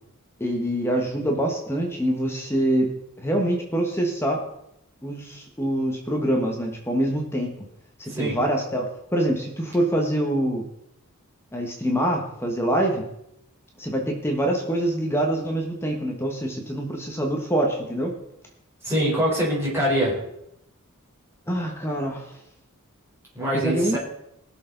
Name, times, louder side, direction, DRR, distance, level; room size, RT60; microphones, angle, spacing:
voice 1, 0.4-4.4 5.0-7.5 8.0-8.8 9.1-10.6 11.5-13.0 13.8-18.1 21.5-22.2 23.4-24.0, right 1 dB, 10° left, 1 dB, 1.4 m, -25 dB
voice 2, 8.1-8.4 18.8-20.2 23.3-24.0, equal, 10° right, -6 dB, 4.2 m, -24 dB
20.0 x 6.8 x 4.0 m, 0.78 s
head